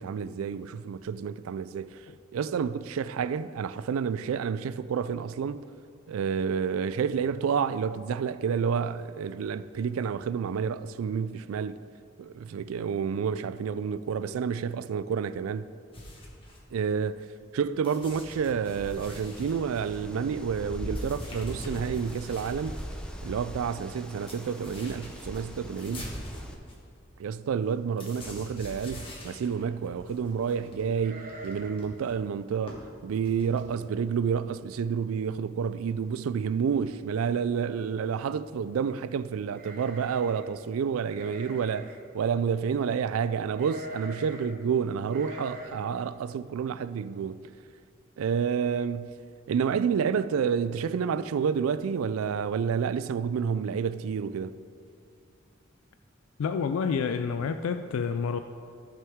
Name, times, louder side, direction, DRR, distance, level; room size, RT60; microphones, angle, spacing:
voice 1, 0.0-2.0 2.3-5.7 6.1-11.8 12.2-15.7 16.7-17.2 17.5-22.8 23.2-26.1 27.2-47.4 48.2-49.1 49.5-54.5, right 6 dB, 90° right, 0.3 m, -29 dB
sound 1, 15.9-17.5 17.8-22.9 23.3-23.4 23.6-33.8, left 1 dB, 25° left, 1.5 m, -45 dB
Wind, 18.6-26.5, equal, 5° left, 0.6 m, -41 dB
sound 2, 31.0-31.9 32.2-32.3 32.7-33.0 33.6-33.7 34.0-34.5 34.8-34.9 36.0-36.1 36.4-36.9 39.5-40.5 41.1-42.1 43.5-44.5 45.1-45.7, equal, 40° right, 1.1 m, -44 dB
voice 2, 56.4-58.4, left 5 dB, 85° left, 0.3 m, -28 dB
14.5 x 5.8 x 3.6 m
head